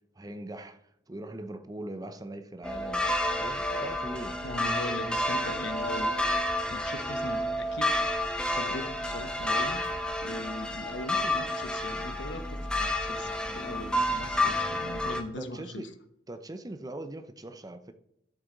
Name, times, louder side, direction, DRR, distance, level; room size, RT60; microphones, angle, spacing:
voice 1, 0.2-3.1 3.4-4.4 15.4-15.9 16.3-17.9, right 1 dB, 20° right, 0.6 m, -41 dB
sound 1, 2.6-15.2, left 1 dB, 5° left, 1.1 m, -30 dB
voice 2, 4.4-6.3 6.7-7.9 8.5-9.9 10.2-15.9, left 1 dB, 65° left, 1.1 m, -40 dB
12.0 x 7.7 x 3.9 m
head